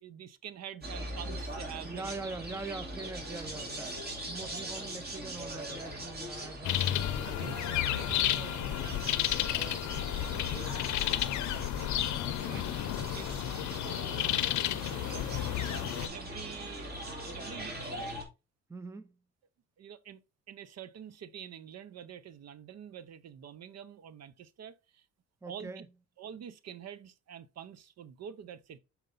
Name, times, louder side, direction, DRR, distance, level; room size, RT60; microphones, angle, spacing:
voice 1, 0.0-2.3 4.0-4.1 6.9-12.1 13.0-13.3 13.8-14.6 15.0-18.1 19.8-20.2 20.5-25.1 25.5-25.8 26.2-28.8, right 9 dB, 60° right, 0.7 m, -47 dB
sound 1, 0.8-18.2, right 1 dB, 30° right, 2.7 m, -41 dB
voice 2, 1.8-3.9 4.3-7.5 12.9-13.4 18.7-19.2 25.4-25.9, right 3 dB, 10° right, 0.5 m, -43 dB
sound 2, 6.6-16.1, left 12 dB, 70° left, 0.6 m, -32 dB
6.6 x 4.4 x 3.8 m
cardioid pair, 90°, 30 cm